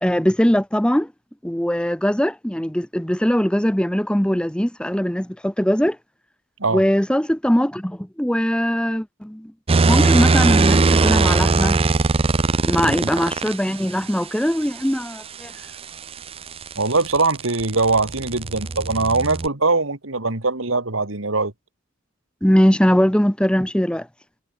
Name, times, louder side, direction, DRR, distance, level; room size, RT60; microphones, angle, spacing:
voice 1, 0.0-1.1 1.4-6.0 6.7-9.5 9.9-11.8 12.7-15.5 22.4-24.1, equal, 5° left, 1.1 m, -21 dB
sound 1, 9.7-13.6 15.8-19.5, right 3 dB, 30° right, 0.5 m, -19 dB
voice 2, 16.8-21.5, right 3 dB, 75° right, 2.5 m, -21 dB
head